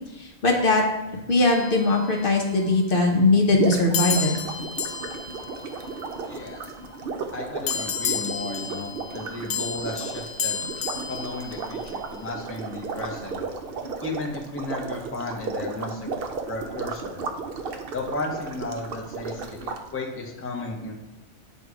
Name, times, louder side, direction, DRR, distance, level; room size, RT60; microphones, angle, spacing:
voice 1, 0.1-0.8 1.3-4.3, left 2 dB, 55° left, 1 dB, 0.9 m, -20 dB
sound 1, 1.4-2.7 3.9-6.6 7.7-12.2, left 6 dB, 85° left, 0.9 m, -32 dB
sound 2, 3.5-19.8, right 4 dB, 60° right, 0.7 m, -34 dB
voice 2, 6.3-6.7 7.3-10.6 11.1-13.4 14.0-16.0 16.5-17.2 17.9-20.9, left 2 dB, 15° left, 0 dB, 0.6 m, -34 dB
7.8 x 2.7 x 4.7 m, 1.1 s
omnidirectional pair, 1.2 m